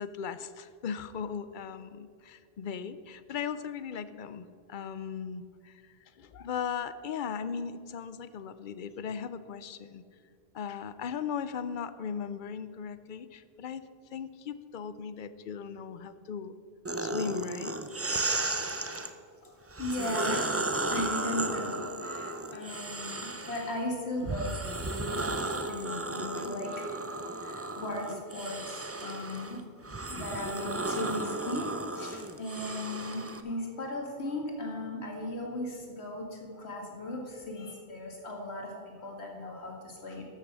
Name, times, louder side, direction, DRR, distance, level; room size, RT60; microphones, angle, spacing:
voice 1, 0.0-5.7 6.2-10.0 10.5-13.8 14.1-16.5 17.0-17.8, left 7 dB, 55° left, 13 dB, 0.7 m, -38 dB
sound 1, 16.8-19.1 19.7-23.8 24.3-33.4, right 2 dB, 20° right, 0.4 m, -34 dB
voice 2, 19.4-24.6 25.0-29.6 30.1-40.3, left 1 dB, 80° left, 0 dB, 2.2 m, -37 dB
13.0 x 6.8 x 6.1 m, 2.2 s
omnidirectional pair, 1.1 m